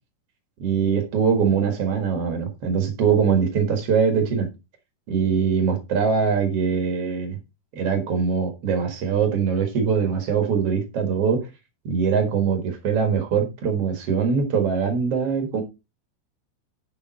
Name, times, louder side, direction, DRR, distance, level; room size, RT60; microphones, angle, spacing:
voice 1, 0.6-4.5 5.1-7.4 7.7-11.5 11.8-15.6, right 6 dB, 80° right, 1.3 m, -22 dB
10.5 x 5.1 x 4.1 m
omnidirectional pair, 5.5 m